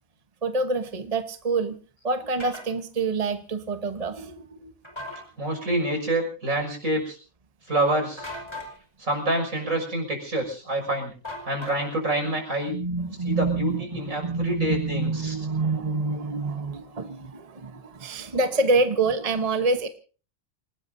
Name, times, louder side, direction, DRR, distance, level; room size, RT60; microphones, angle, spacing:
voice 1, 0.4-1.8 2.0-4.7 12.7-19.9, right 3 dB, 30° right, 8 dB, 1.2 m, -27 dB
sound 1, 2.4-2.7 4.8-5.2 8.2-8.7 11.2-12.0, left 1 dB, 20° left, 5.1 m, -37 dB
voice 2, 5.4-7.2 7.7-8.3 9.0-11.1 11.4-12.7 13.2-15.3, right 1 dB, 80° right, 3 dB, 6.8 m, -27 dB
28.5 x 18.5 x 2.7 m, 0.38 s
omnidirectional pair, 1.4 m